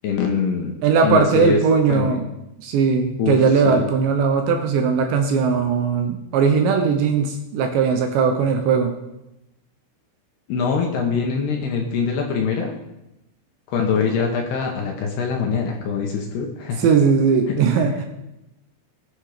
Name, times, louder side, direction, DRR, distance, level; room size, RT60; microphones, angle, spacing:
voice 1, 0.0-0.7 1.0-1.6 1.9-2.2 3.2-3.9 10.5-12.8 13.7-16.9 17.5-17.6, left 5 dB, 65° left, 1 dB, 2.9 m, -23 dB
voice 2, 0.8-2.2 2.6-8.9 16.8-18.1, right 5 dB, 70° right, 4 dB, 2.9 m, -19 dB
20.5 x 8.2 x 5.1 m, 0.92 s
omnidirectional pair, 6.0 m